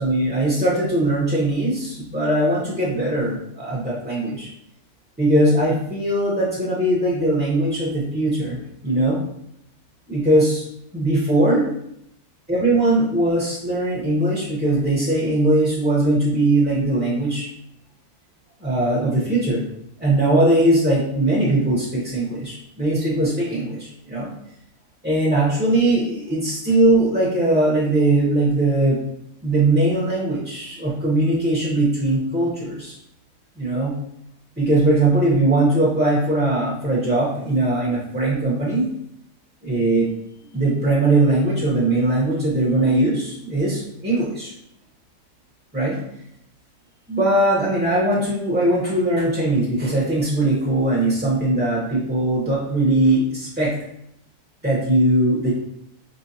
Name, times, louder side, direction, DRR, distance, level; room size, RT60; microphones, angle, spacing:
voice 1, 0.0-4.5 5.2-8.6 8.8-9.2 10.1-10.6 10.9-11.6 12.5-17.5 18.6-19.6 20.0-24.3 25.0-29.0 29.4-32.9 33.6-33.9 34.6-38.9 39.6-40.1 40.5-44.5 45.7-46.0 47.1-53.8 54.6-55.5, right 1 dB, 10° right, -6 dB, 0.5 m, -20 dB
4.5 x 3.2 x 2.7 m, 0.75 s
omnidirectional pair, 1.7 m